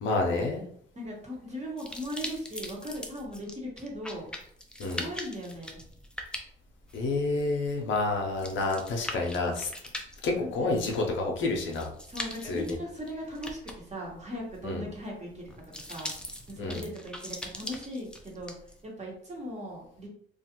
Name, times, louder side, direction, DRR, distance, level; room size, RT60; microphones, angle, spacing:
voice 1, 0.0-0.6 4.8-5.0 6.9-9.7 10.2-11.9 12.4-12.8 14.6-14.8 16.6-16.8, left 3 dB, 75° left, 1 dB, 0.7 m, -29 dB
voice 2, 0.9-4.3 4.9-5.8 10.3-10.8 12.0-15.4 15.9-16.1 16.5-18.5 18.8-20.1, equal, 35° right, -2 dB, 1.1 m, -38 dB
sound 1, 1.8-18.8, left 1 dB, 5° left, 0.4 m, -42 dB
2.4 x 2.4 x 2.9 m, 0.64 s
cardioid pair, 90°, 20 cm